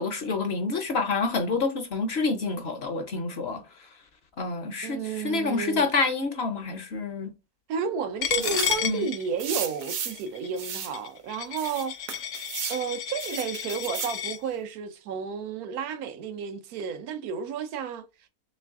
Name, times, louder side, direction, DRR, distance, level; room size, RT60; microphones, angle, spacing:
voice 1, 0.0-3.6 4.4-7.3 8.8-9.1, left 4 dB, 60° left, 0.7 m, -28 dB
voice 2, 4.8-5.9 7.7-11.9 12.7-18.0, right 6 dB, 90° right, 1.1 m, -32 dB
Coin (dropping), 8.2-14.4, left 9 dB, 80° left, 1.0 m, -32 dB
sound 1, 8.4-8.9 9.4-10.2 10.6-10.9 11.6-12.8 13.2-14.2, right 7 dB, 70° right, 1.1 m, -34 dB
3.3 x 3.1 x 3.4 m
omnidirectional pair, 1.5 m